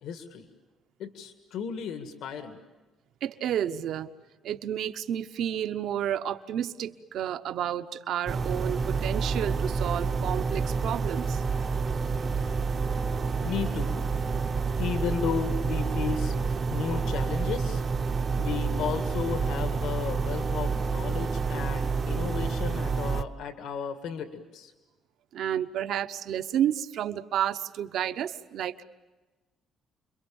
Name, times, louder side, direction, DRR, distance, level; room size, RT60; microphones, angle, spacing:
voice 1, 0.0-0.5 1.0-2.6 13.4-14.0 14.8-16.3 16.7-17.8 18.4-24.7, left 7 dB, 75° left, 6 dB, 2.0 m, -34 dB
voice 2, 3.2-4.1 4.4-11.4 25.3-28.8, right 10 dB, 60° right, 10 dB, 0.9 m, -31 dB
sound 1, 8.3-23.2, right 5 dB, 30° right, 0.8 m, -28 dB
30.0 x 23.0 x 7.1 m, 1.2 s
cardioid pair, 155°, 0 cm